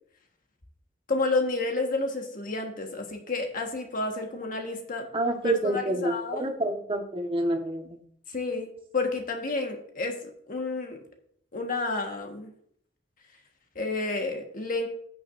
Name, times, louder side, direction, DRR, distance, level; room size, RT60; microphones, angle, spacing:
voice 1, 1.1-5.1 5.4-6.5 8.3-10.2 10.5-11.0 11.5-12.5 13.7-14.9, left 3 dB, 50° left, 3 dB, 1.5 m, -30 dB
voice 2, 5.1-8.0, right 1 dB, 30° right, 3 dB, 1.4 m, -28 dB
15.0 x 6.8 x 2.6 m, 0.65 s
head